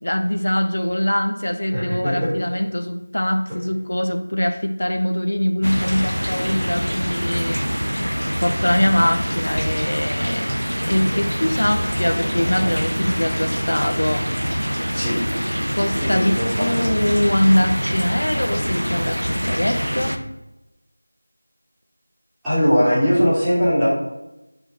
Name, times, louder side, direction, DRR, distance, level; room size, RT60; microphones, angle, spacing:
voice 1, 0.0-7.6 8.4-10.6 10.9-14.3 15.7-20.3, left 1 dB, 60° left, 7 dB, 1.5 m, -22 dB
voice 2, 1.7-2.3 6.3-6.7 12.3-12.7 14.9-15.2 16.0-16.7 22.4-23.9, equal, 5° right, -20 dB, 4.2 m, -21 dB
sound 1, 5.6-20.2, equal, 80° right, 1.3 m, -25 dB
8.7 x 6.4 x 6.4 m, 0.98 s
figure-of-eight pair, 170°, 0 cm